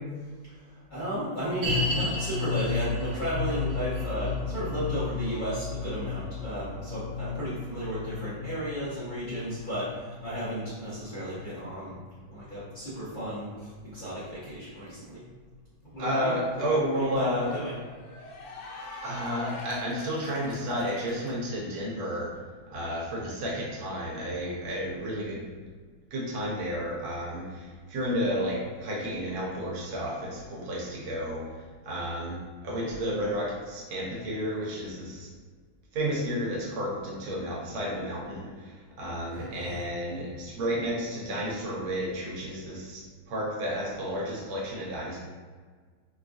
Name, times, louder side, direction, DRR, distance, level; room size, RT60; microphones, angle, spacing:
voice 1, 0.5-11.9 12.3-15.2 15.9-17.8 39.3-39.9, equal, 55° left, -12 dB, 0.5 m, -34 dB
sound 1, 1.6-12.9 13.2-13.3 13.9-14.0, left 4 dB, 55° right, 0.9 m, -33 dB
Cheering / Applause, 15.5-15.6 15.9-21.3, left 2 dB, 80° left, 1.3 m, -45 dB
voice 2, 16.0-17.5 19.0-22.3 22.7-25.5 26.1-31.5 31.8-35.3 35.9-43.0 43.3-45.2, equal, 80° right, -4 dB, 1.6 m, -31 dB
4.3 x 2.4 x 2.5 m, 1.5 s
omnidirectional pair, 2.2 m